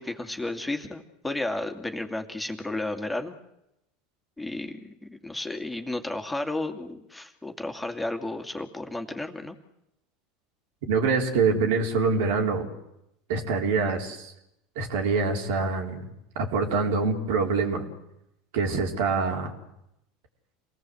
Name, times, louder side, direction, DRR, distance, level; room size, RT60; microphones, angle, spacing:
voice 1, 0.0-3.3 4.4-9.6, left 2 dB, 5° left, 4 dB, 2.5 m, -33 dB
voice 2, 10.8-12.6 13.3-14.3 14.8-16.1 16.4-17.8 18.5-19.5, right 4 dB, 75° right, 2 dB, 4.2 m, -25 dB
27.0 x 18.5 x 8.0 m, 0.84 s
hypercardioid pair, 100°, 0 cm